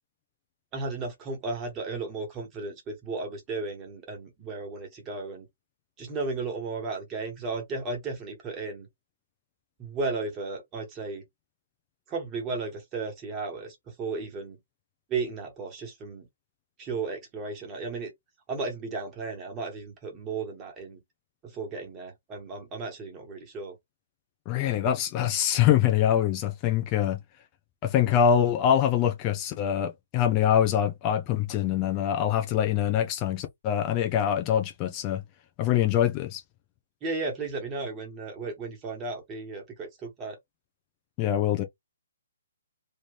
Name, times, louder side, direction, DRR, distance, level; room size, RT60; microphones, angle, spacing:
voice 1, 0.7-5.5 6.0-8.9 9.8-11.2 12.1-14.6 15.1-16.2 16.8-18.1 18.5-21.0 21.4-23.7 37.0-40.4, right 3 dB, 20° right, 1.7 m, -34 dB
voice 2, 24.5-27.2 27.8-35.2 35.6-36.4 41.2-41.6, left 10 dB, 30° left, 0.6 m, -24 dB
3.3 x 2.6 x 3.3 m
hypercardioid pair, 135°, 0 cm